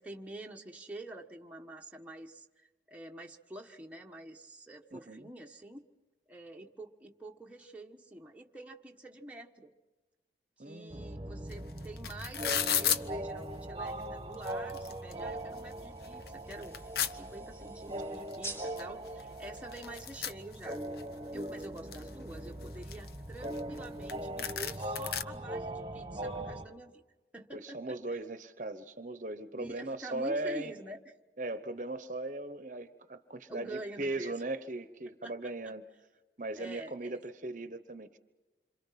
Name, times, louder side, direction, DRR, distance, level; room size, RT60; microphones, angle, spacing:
voice 1, 0.0-5.9 6.3-9.7 10.6-16.7 17.1-20.8 21.3-27.0 27.3-28.2 29.6-31.1 33.5-34.3 35.2-35.7 36.6-37.2, right 1 dB, 10° right, 1 dB, 1.3 m, -47 dB
voice 2, 4.9-5.3 10.6-11.0 27.5-30.7 31.4-35.8 36.4-38.2, right 2 dB, 45° right, 11 dB, 1.0 m, -38 dB
sound 1, 10.9-26.6, right 1 dB, 25° right, 1.4 m, -41 dB
sound 2, 11.5-11.6 11.8-13.0 13.9-14.0 14.3-15.1 15.6-15.7 16.0-17.1 18.3-18.4 18.8-18.9 19.1-21.0 21.4-22.1 22.6-23.8 24.1-24.2 24.4-25.2, left 8 dB, 60° left, 1.0 m, -33 dB
sound 3, 15.8-20.6, right 1 dB, 15° left, 5.3 m, -50 dB
27.5 x 26.5 x 5.9 m, 1.2 s
head